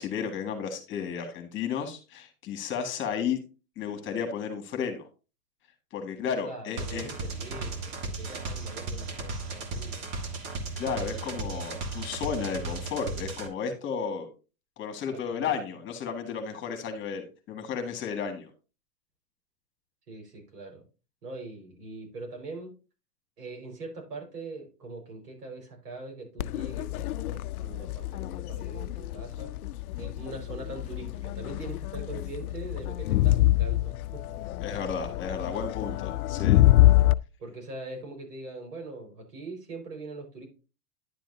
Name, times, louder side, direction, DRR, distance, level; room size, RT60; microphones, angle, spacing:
voice 1, 0.0-3.4 3.8-5.1 5.9-7.1 10.8-14.3 14.8-18.5 34.6-36.6, left 6 dB, 25° left, 6 dB, 1.7 m, -33 dB
voice 2, 6.4-10.1 15.1-15.6 20.1-20.8 21.2-22.7 23.4-29.5 30.0-34.4 34.7-34.8 37.4-40.5, right 2 dB, 85° right, 1 dB, 4.8 m, -42 dB
sound 1, 6.8-13.5, right 3 dB, 35° right, 1.6 m, -35 dB
Crowd, 26.4-37.1, left 15 dB, 70° left, 0.5 m, -26 dB
10.5 x 7.6 x 2.7 m, 0.32 s
hypercardioid pair, 135°, 46 cm